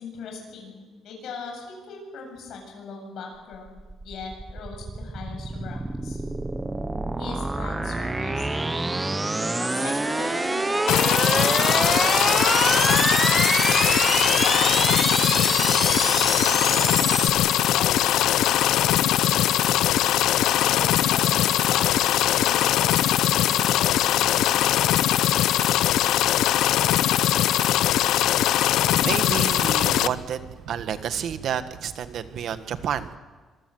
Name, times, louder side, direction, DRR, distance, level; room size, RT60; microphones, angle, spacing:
voice 1, 0.0-6.2 7.2-8.8 9.6-13.6 14.4-17.1 17.7-19.9 20.4-24.6, left 4 dB, 60° left, 1 dB, 7.7 m, -40 dB
sound 1, 3.5-17.3, right 2 dB, 10° right, 1.2 m, -26 dB
sound 2, 10.9-30.1, left 12 dB, 90° left, 0.7 m, -21 dB
voice 2, 28.9-33.2, right 8 dB, 55° right, 11 dB, 1.4 m, -30 dB
25.5 x 20.5 x 7.8 m, 1.4 s
cardioid pair, 175°, 0 cm